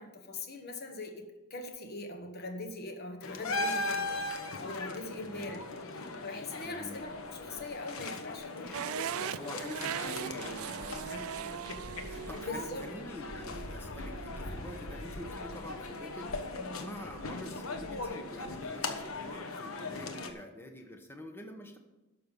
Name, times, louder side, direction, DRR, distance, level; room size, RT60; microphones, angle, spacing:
voice 1, 0.0-4.2 4.6-5.6 5.9-9.6 12.3-12.8, left 2 dB, 50° left, 4 dB, 1.2 m, -42 dB
sound 1, 3.2-20.3, left 2 dB, 80° left, 1.1 m, -39 dB
voice 2, 6.6-7.0 8.5-8.8 9.4-11.6 12.0-21.8, left 1 dB, 10° left, 5 dB, 1.0 m, -46 dB
sound 2, 8.7-14.8, right 10 dB, 80° right, 0.3 m, -40 dB
12.0 x 6.7 x 5.4 m, 1.0 s
head